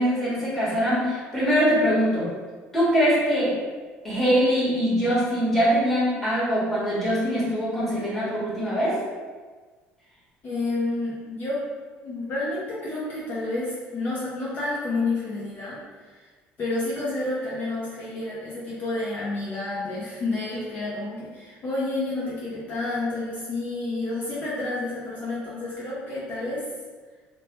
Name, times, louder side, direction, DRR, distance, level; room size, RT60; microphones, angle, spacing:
voice 1, 0.0-2.3 2.7-3.6 4.0-9.0, equal, 5° left, -10 dB, 1.2 m, -23 dB
voice 2, 10.4-11.6 12.0-16.3 16.6-26.7, left 2 dB, 40° left, -8 dB, 0.7 m, -30 dB
3.1 x 2.1 x 2.8 m, 1.4 s
cardioid pair, 130°, 4 cm